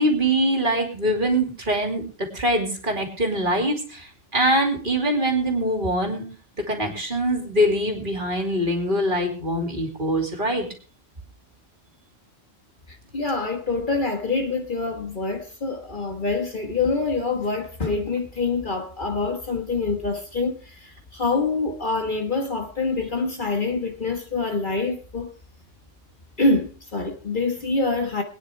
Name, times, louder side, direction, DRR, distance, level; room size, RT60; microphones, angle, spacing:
voice 1, 0.0-2.0 2.3-6.2 6.6-10.7, right 1 dB, 40° right, 2.8 m, -23 dB
voice 2, 13.1-25.3 26.4-28.2, left 3 dB, 40° left, 1.6 m, -25 dB
21.5 x 9.8 x 3.3 m
omnidirectional pair, 1.3 m